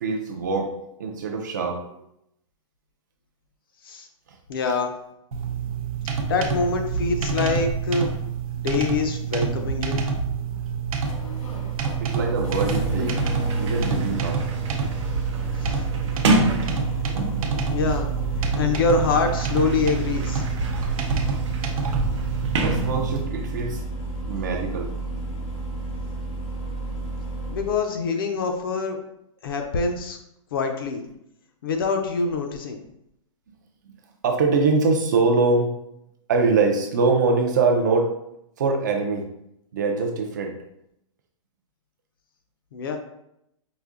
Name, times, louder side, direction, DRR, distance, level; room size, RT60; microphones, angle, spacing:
voice 1, 0.0-2.0 12.0-13.2 13.6-14.5 17.9-18.0 22.6-23.8 24.3-24.9 34.2-35.7 36.3-38.1 38.6-39.2 39.7-40.5, right 4 dB, 35° right, 3 dB, 0.4 m, -23 dB
voice 2, 4.5-4.9 6.2-8.1 8.6-10.0 15.6-15.8 17.7-18.1 18.6-20.4 27.5-29.0 29.4-30.2 30.5-31.0 31.6-32.8 42.7-43.0, left 4 dB, 40° left, 4 dB, 0.5 m, -25 dB
sound 1, 5.3-23.2, right 5 dB, 90° right, 0.8 m, -27 dB
Engine starting, 9.8-27.8, right 1 dB, 85° left, 1.1 m, -32 dB
Sliding door, 12.6-17.6 18.5-23.5, right 2 dB, 55° right, 0.7 m, -30 dB
4.8 x 2.5 x 2.4 m, 0.79 s
hypercardioid pair, 175°, 18 cm